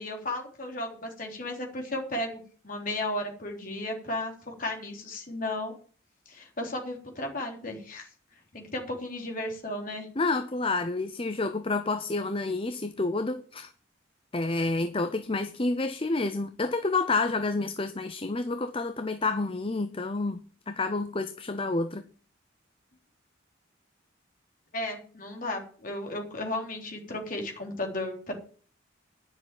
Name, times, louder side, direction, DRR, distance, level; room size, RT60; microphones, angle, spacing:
voice 1, 0.0-5.7 6.3-8.1 8.5-10.1 24.7-28.3, left 1 dB, 45° left, 1 dB, 3.6 m, -34 dB
voice 2, 10.2-13.7 14.3-20.4 20.7-22.0, left 3 dB, 30° left, 10 dB, 0.7 m, -29 dB
10.5 x 7.1 x 9.1 m, 0.42 s
head